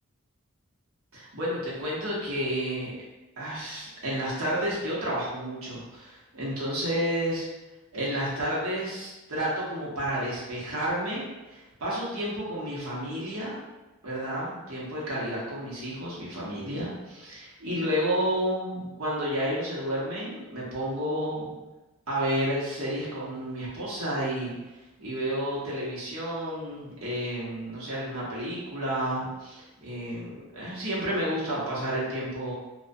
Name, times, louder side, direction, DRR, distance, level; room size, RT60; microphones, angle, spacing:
voice 1, 1.1-2.9 3.4-7.5 7.9-11.2 11.5-13.6 14.0-21.5 22.1-24.5 25.0-32.5, equal, 70° right, -7 dB, 0.9 m, -31 dB
2.5 x 2.3 x 2.2 m, 1.1 s
head